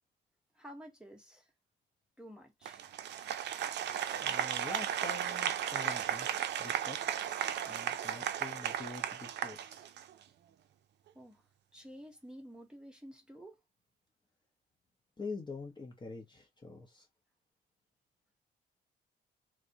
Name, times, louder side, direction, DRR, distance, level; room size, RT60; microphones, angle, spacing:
voice 1, 0.6-1.5 2.2-2.9 11.1-11.4 11.7-13.6, equal, 5° right, 0.9 m, -51 dB
Applause, 2.7-10.2, right 10 dB, 60° right, 0.4 m, -35 dB
voice 2, 4.2-6.3 6.6-7.2 7.7-9.9 15.2-17.0, left 3 dB, 20° left, 0.7 m, -45 dB
2.3 x 2.0 x 2.7 m
cardioid pair, 90°, 20 cm